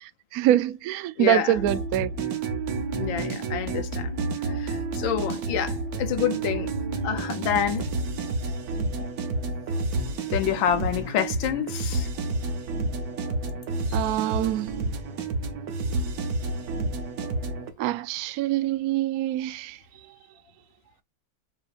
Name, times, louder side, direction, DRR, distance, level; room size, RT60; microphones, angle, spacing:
voice 1, 0.0-2.1 13.9-14.8 17.8-19.8, right 13 dB, 80° right, 0.8 m, -25 dB
voice 2, 1.2-1.5 2.9-4.2 4.5-6.7 7.0-7.9 10.3-12.1 13.9-14.0, left 9 dB, 85° left, 1.6 m, -28 dB
sound 1, 1.5-17.7, right 3 dB, 60° right, 1.2 m, -30 dB
6.3 x 2.9 x 2.4 m
omnidirectional pair, 2.1 m